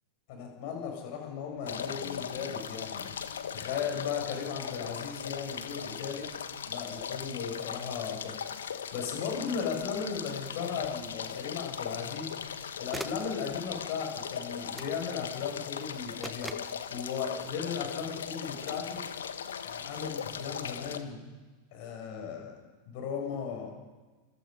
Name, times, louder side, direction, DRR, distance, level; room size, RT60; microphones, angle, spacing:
voice 1, 0.3-3.1 3.5-6.3 6.7-12.3 12.8-16.5 16.9-19.0 19.6-21.2 21.7-22.5 22.9-23.7, left 6 dB, 50° left, 2 dB, 7.5 m, -36 dB
sound 1, 1.7-21.0, left 7 dB, 65° left, 1.6 m, -39 dB
sound 2, 12.4-12.6 12.9-13.3 14.8-15.0 16.2-16.8 18.6-18.9, right 1 dB, 5° right, 1.5 m, -42 dB
28.5 x 28.0 x 5.5 m, 1.3 s
figure-of-eight pair, 90°, 0 cm